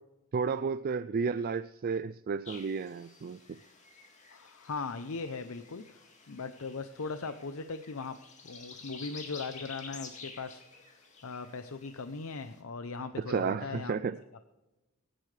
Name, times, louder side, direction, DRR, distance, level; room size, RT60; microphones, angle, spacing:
voice 1, 0.3-3.6 13.2-14.2, right 5 dB, 45° right, 13 dB, 0.3 m, -32 dB
sound 1, 2.4-12.6, left 4 dB, 35° left, 2.2 m, -51 dB
voice 2, 4.3-8.2 8.4-10.6 11.2-14.0, left 4 dB, 75° left, 10 dB, 0.7 m, -39 dB
24.0 x 10.0 x 3.3 m, 1.0 s
head